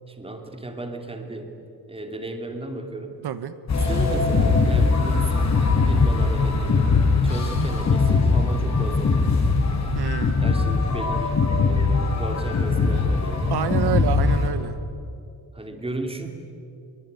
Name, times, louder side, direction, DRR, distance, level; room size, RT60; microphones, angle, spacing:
voice 1, 0.1-1.5 1.9-3.2 3.7-9.2 10.4-11.4 11.7-13.6 15.5-16.3, right 2 dB, 15° right, 4 dB, 2.8 m, -35 dB
sound 1, 3.7-14.5, left 4 dB, 40° left, 3.9 m, -21 dB
voice 2, 9.9-10.4 13.5-14.8, right 10 dB, 65° right, 11 dB, 1.0 m, -27 dB
24.0 x 23.0 x 9.5 m, 2.6 s
wide cardioid pair, 160°, 42 cm